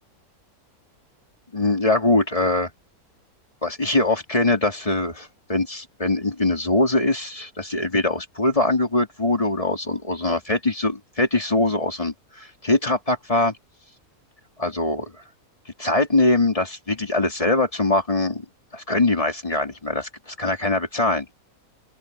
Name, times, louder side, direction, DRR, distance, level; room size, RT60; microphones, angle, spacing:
voice 1, 1.5-2.7 3.6-13.6 14.6-15.1 15.8-18.4 18.7-21.3, left 2 dB, 20° left, 3.2 m, -22 dB
open air
omnidirectional pair, 1.6 m